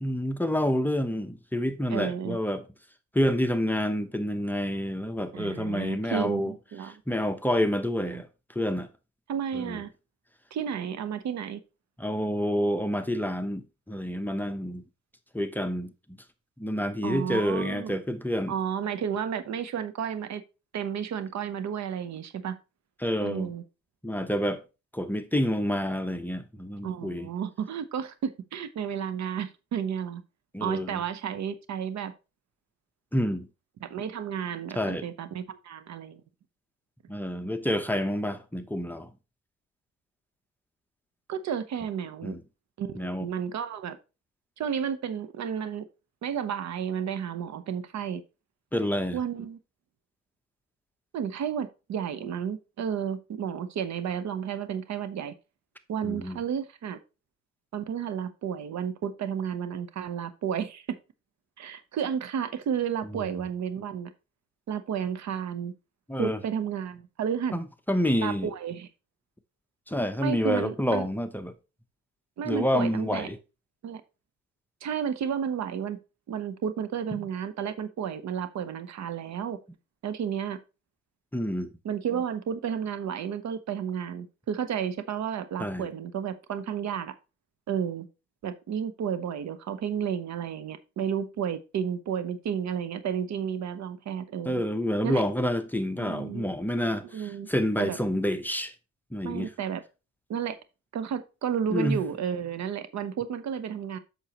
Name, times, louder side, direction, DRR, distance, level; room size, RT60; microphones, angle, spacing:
voice 1, 0.0-2.6 3.1-6.5 7.1-8.3 8.5-8.9 9.5-9.8 12.0-14.8 15.3-15.9 16.6-18.5 23.0-23.5 24.0-24.6 24.9-27.3 30.5-31.0 33.1-33.5 34.7-35.0 37.1-39.1 42.2-42.4 43.0-43.3 48.7-49.2 56.0-56.4 63.1-63.3 66.1-66.4 67.5-68.5 69.9-71.5 72.5-73.4 81.3-81.7 85.6-85.9 94.5-98.7 99.1-99.5 101.7-102.0, equal, 5° left, 0.8 m, -28 dB
voice 2, 1.9-2.4 5.3-6.9 8.0-8.2 9.3-9.9 10.5-11.6 17.0-18.0 18.5-20.4 20.7-22.6 23.2-23.6 26.8-30.2 30.6-32.1 33.8-36.2 41.3-42.4 42.8-44.0 44.6-45.8 46.2-48.2 49.1-49.6 51.1-55.3 55.9-57.0 57.7-61.0 61.6-64.1 64.7-65.7 66.2-67.6 68.2-68.9 70.2-71.1 72.4-73.3 73.8-74.0 74.8-76.0 76.3-79.6 80.0-80.6 81.8-87.1 87.7-88.1 88.4-94.5 95.0-95.2 96.0-96.5 97.1-97.5 97.8-98.0 99.2-99.8 100.3-100.6 100.9-104.0, right 8 dB, 65° right, 0.9 m, -32 dB
8.0 x 6.4 x 2.9 m
cardioid pair, 90°, 30 cm